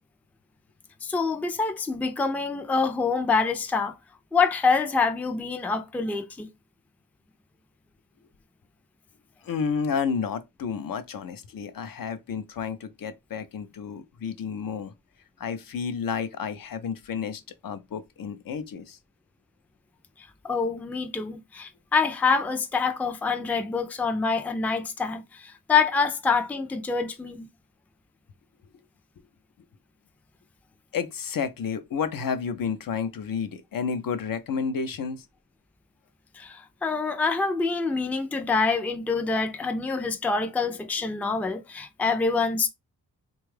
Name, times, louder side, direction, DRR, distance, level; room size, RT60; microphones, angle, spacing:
voice 1, 1.0-4.0 4.3-6.5 20.4-27.5 36.3-42.7, left 4 dB, 5° left, 0.3 m, -26 dB
voice 2, 9.4-14.9 15.4-19.0 30.9-35.3 40.6-40.7 41.0-41.1, left 6 dB, 65° left, 0.5 m, -31 dB
3.4 x 2.3 x 3.1 m
wide cardioid pair, 135°, 36 cm